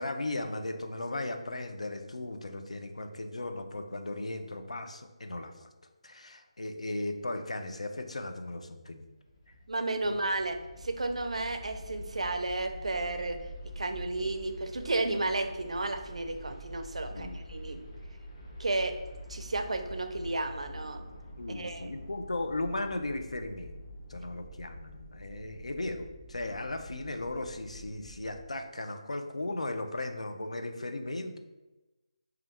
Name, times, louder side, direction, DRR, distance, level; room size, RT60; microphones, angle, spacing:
voice 1, 0.0-5.7 6.0-9.1 10.1-10.2 17.1-17.9 21.4-23.7 24.1-31.4, left 2 dB, 85° left, 6 dB, 0.4 m, -37 dB
sound 1, 9.0-28.4, equal, 35° left, 0.9 m, -46 dB
voice 2, 9.7-13.4 13.8-17.8 18.6-19.0 19.3-21.0 21.6-21.9, right 2 dB, 75° right, 7 dB, 0.4 m, -32 dB
2.9 x 2.3 x 3.4 m, 1.1 s
figure-of-eight pair, 160°, 3 cm